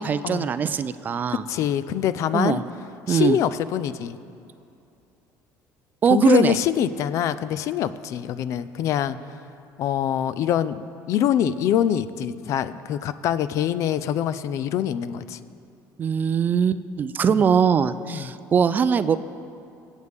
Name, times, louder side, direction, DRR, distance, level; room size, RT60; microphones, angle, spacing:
voice 1, 0.0-1.4 2.3-2.6 3.1-3.4 6.0-6.6 16.0-19.2, right 7 dB, 30° right, 13 dB, 0.3 m, -21 dB
voice 2, 1.3-2.6 3.1-4.2 6.1-9.2 9.8-15.4 17.3-17.4 18.1-18.3, left 10 dB, 55° left, 14 dB, 0.4 m, -24 dB
23.5 x 8.2 x 3.6 m, 2.6 s
cardioid pair, 140°, 6 cm